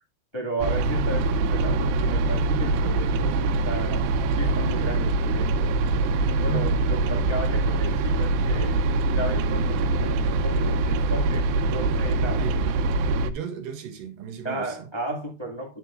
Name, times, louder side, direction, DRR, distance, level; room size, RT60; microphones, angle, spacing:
voice 1, 0.3-4.1 4.3-5.8 6.2-8.8 9.1-12.5 14.4-15.8, right 1 dB, 25° left, 0.6 m, -34 dB
sound 1, 0.6-13.3, right 2 dB, 90° right, 2.9 m, -23 dB
voice 2, 13.1-14.9, right 9 dB, 65° right, 2.9 m, -34 dB
9.9 x 7.5 x 2.4 m
omnidirectional pair, 4.6 m